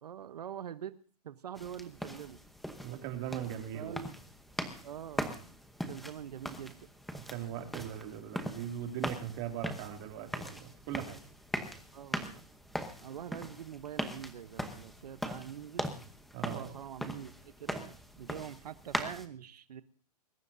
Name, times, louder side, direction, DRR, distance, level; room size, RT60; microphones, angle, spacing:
voice 1, 0.0-1.0 1.2-2.4 3.7-4.1 4.8-5.3 5.9-6.8 11.9-12.4 13.0-16.0 16.5-17.3 17.6-19.8, right 9 dB, 80° right, 11 dB, 1.0 m, -44 dB
sound 1, 1.6-19.3, equal, ahead, 0.9 m, -41 dB
voice 2, 2.8-4.0 7.1-11.2 16.3-16.7, right 10 dB, 30° right, 4 dB, 2.5 m, -40 dB
21.0 x 18.5 x 2.7 m, 0.43 s
hypercardioid pair, 165°, 20 cm